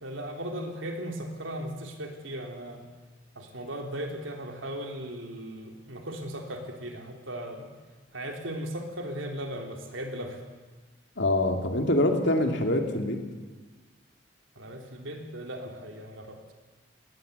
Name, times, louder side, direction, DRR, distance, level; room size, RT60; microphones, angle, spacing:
voice 1, 0.0-2.8 3.3-7.7 8.1-10.4 14.5-16.5, right 1 dB, 90° right, 3 dB, 3.4 m, -37 dB
voice 2, 11.2-13.2, left 1 dB, 65° left, 4 dB, 2.8 m, -25 dB
19.5 x 19.5 x 8.1 m, 1.4 s
head